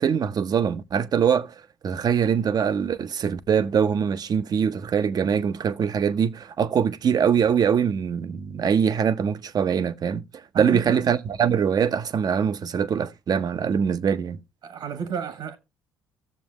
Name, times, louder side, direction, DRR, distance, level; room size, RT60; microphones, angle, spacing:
voice 1, 0.0-1.5 1.8-14.4, right 7 dB, 45° right, 0.7 m, -23 dB
voice 2, 10.5-11.0 14.6-15.6, right 7 dB, 60° right, 1.6 m, -32 dB
15.5 x 7.0 x 2.9 m
hypercardioid pair, 55°, 9 cm